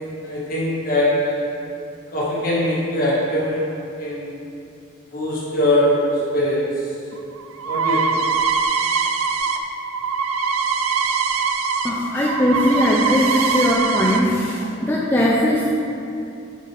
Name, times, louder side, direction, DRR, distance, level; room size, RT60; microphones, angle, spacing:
voice 1, 0.0-1.4 2.1-4.3 5.1-6.1 6.3-6.6 7.6-8.2, left 1 dB, 45° left, -6 dB, 1.4 m, -22 dB
sound 1, 7.1-11.9 12.2-14.2, right 5 dB, 90° right, 0.4 m, -22 dB
voice 2, 11.8-15.7, left 1 dB, 10° left, -6 dB, 0.4 m, -19 dB
8.5 x 4.1 x 3.3 m, 2.6 s
head